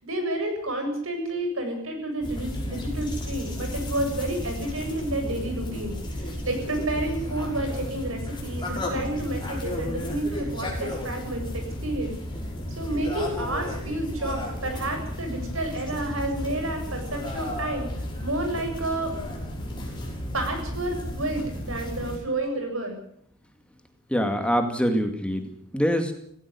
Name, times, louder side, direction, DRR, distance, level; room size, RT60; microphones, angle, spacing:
voice 1, 0.0-12.1 12.7-17.9 18.2-19.1 20.3-22.9, right 1 dB, 80° right, 5 dB, 7.5 m, -30 dB
sound 1, 2.2-22.2, left 1 dB, 20° left, 6.2 m, -33 dB
voice 2, 24.1-26.1, equal, 5° left, 6 dB, 2.3 m, -24 dB
18.0 x 17.0 x 9.6 m, 0.67 s
head